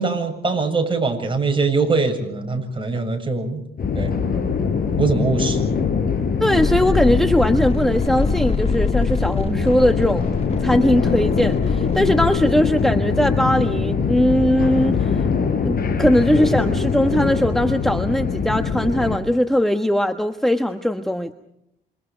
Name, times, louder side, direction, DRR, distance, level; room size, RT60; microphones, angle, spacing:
voice 1, 0.0-3.6 3.9-4.1 5.0-5.7, right 4 dB, 25° right, 3 dB, 7.5 m, -22 dB
sound 1, 3.8-19.2, left 5 dB, 50° left, 4.9 m, -22 dB
voice 2, 6.4-10.3 10.6-15.2 15.6-21.3, equal, ahead, 7 dB, 1.3 m, -20 dB
sound 2, 6.5-12.4, left 4 dB, 30° left, 1.5 m, -26 dB
28.0 x 26.0 x 5.1 m, 0.78 s
cardioid pair, 90°, 20 cm